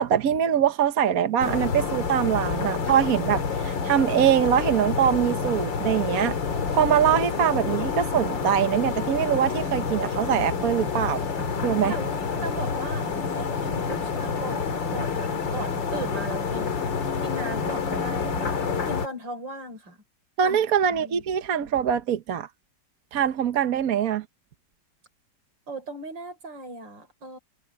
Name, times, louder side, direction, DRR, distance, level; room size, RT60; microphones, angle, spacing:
voice 1, 0.0-6.4 6.7-11.2 11.6-11.9 20.4-22.5 23.1-24.2, right 9 dB, 55° right, 1.3 m, -23 dB
sound 1, 1.4-19.1, left 5 dB, 85° left, 2.7 m, -28 dB
voice 2, 12.4-16.9 17.2-20.0 20.4-21.2 25.7-27.4, right 2 dB, 80° right, 4.4 m, -38 dB
omnidirectional pair, 2.0 m